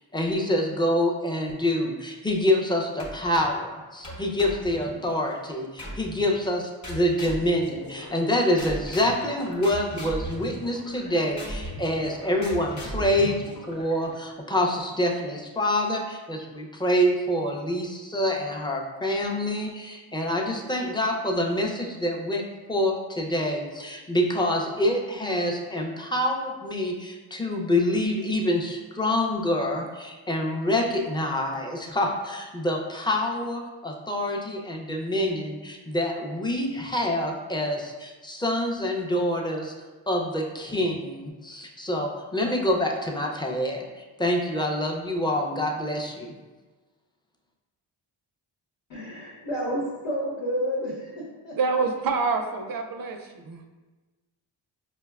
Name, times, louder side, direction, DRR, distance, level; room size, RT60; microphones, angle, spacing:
voice 1, 0.1-22.4 22.7-39.7 40.1-46.3, left 1 dB, 10° left, 0 dB, 0.5 m, -26 dB
Piped squiggle, 3.0-3.6 4.0-5.2 5.8-6.3 6.8-8.3 8.6-14.3, equal, 35° left, 0.9 m, -38 dB
voice 2, 48.9-51.6, equal, 75° left, -4 dB, 1.0 m, -30 dB
voice 3, 51.6-53.6, right 4 dB, 45° right, 5 dB, 0.5 m, -27 dB
4.9 x 2.1 x 2.3 m, 1.2 s
cardioid pair, 50°, 49 cm